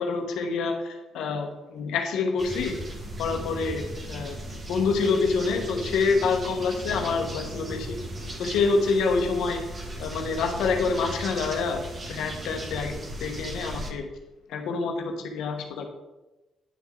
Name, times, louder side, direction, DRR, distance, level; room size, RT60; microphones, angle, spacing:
voice 1, 0.0-2.8 3.2-4.4 4.7-8.0 8.4-9.6 10.0-11.8 12.1-12.9 13.2-14.1 14.5-15.9, left 4 dB, 85° left, 4 dB, 1.2 m, -27 dB
sound 1, 2.4-13.9, right 1 dB, 35° right, 1.6 m, -37 dB
9.1 x 6.5 x 3.8 m, 1.1 s
cardioid pair, 90°, 0 cm